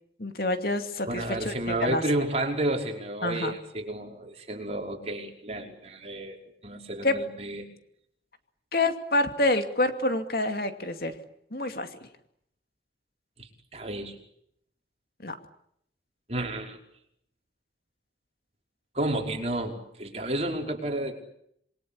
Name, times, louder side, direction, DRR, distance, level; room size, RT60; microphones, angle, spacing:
voice 1, 0.2-2.0 3.2-3.6 7.0-7.2 8.7-11.1 11.5-11.9 15.2-15.4, left 2 dB, 55° left, 7 dB, 2.6 m, -27 dB
voice 2, 1.1-6.4 6.6-7.7 13.4-14.2 16.3-16.8 18.9-21.1, right 1 dB, 35° right, 2 dB, 5.4 m, -31 dB
28.0 x 23.0 x 8.6 m, 0.72 s
head